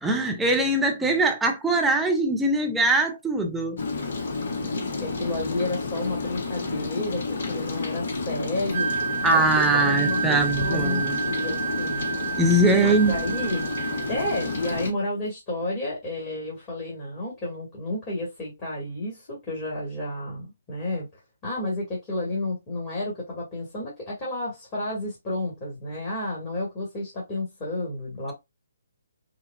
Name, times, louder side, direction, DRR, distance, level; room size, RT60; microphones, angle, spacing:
voice 1, 0.0-3.8 9.2-11.2 12.4-13.1, right 2 dB, 5° right, 0.6 m, -22 dB
Rain, 3.8-14.9, left 3 dB, 55° left, 0.8 m, -30 dB
voice 2, 4.4-8.9 9.3-9.4 9.7-12.1 12.8-13.6 14.1-21.1 21.4-28.3, left 2 dB, 25° left, 2.0 m, -31 dB
Wind instrument woodwind instrument, 8.7-14.9, right 7 dB, 35° right, 0.9 m, -30 dB
5.7 x 2.4 x 2.4 m
figure-of-eight pair, 135°, 0 cm